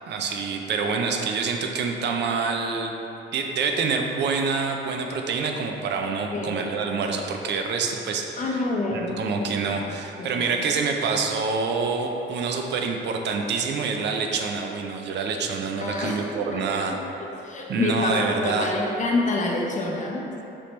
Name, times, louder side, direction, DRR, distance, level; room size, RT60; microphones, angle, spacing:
voice 1, 0.1-2.9 3.3-16.9 17.7-18.7, right 4 dB, 60° right, 3 dB, 0.4 m, -27 dB
voice 2, 8.4-9.5 10.2-10.5 15.8-16.6 16.9-20.3, left 2 dB, 40° left, -2 dB, 0.7 m, -27 dB
4.3 x 3.2 x 3.1 m, 2.9 s
cardioid pair, 90°, 20 cm